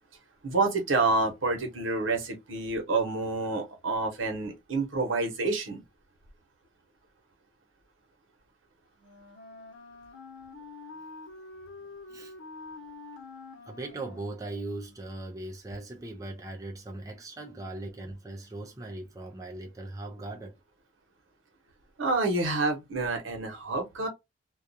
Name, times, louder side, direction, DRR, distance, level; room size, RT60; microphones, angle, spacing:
voice 1, 0.4-5.8 22.0-24.1, right 3 dB, 85° right, 1.0 m, -28 dB
Wind instrument woodwind instrument, 9.0-14.9, left 3 dB, 70° left, 0.9 m, -47 dB
voice 2, 13.7-20.6, right 2 dB, 15° right, 0.4 m, -39 dB
2.4 x 2.3 x 2.6 m
head